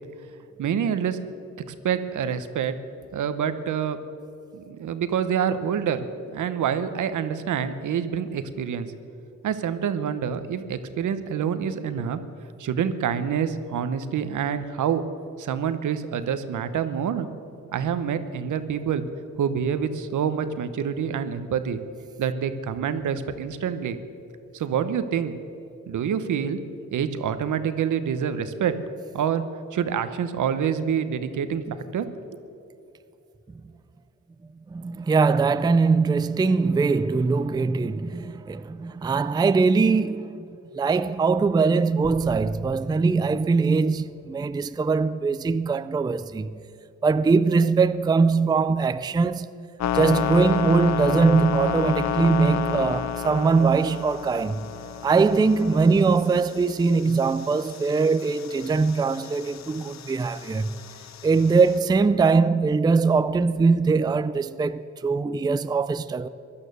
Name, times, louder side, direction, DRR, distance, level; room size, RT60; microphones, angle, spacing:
voice 1, 0.6-1.2 1.7-2.7 3.1-4.0 4.5-6.0 6.3-8.9 9.4-12.2 12.6-15.0 15.4-17.3 17.7-19.0 19.4-21.8 22.2-24.0 24.5-25.4 25.9-26.6 26.9-28.7 29.1-29.4 29.7-31.6 31.9-32.4, right 8 dB, 75° right, 1.0 m, -27 dB
voice 2, 34.7-40.5 40.7-46.6 47.0-49.5 49.9-54.7 55.0-60.9 61.2-66.3, right 4 dB, 15° right, 0.4 m, -22 dB
sound 1, 42.0-44.6, right 2 dB, 30° right, 1.8 m, -43 dB
sound 2, 49.8-61.8, left 10 dB, 60° left, 0.7 m, -31 dB
16.5 x 11.5 x 6.7 m
cardioid pair, 85°, 30 cm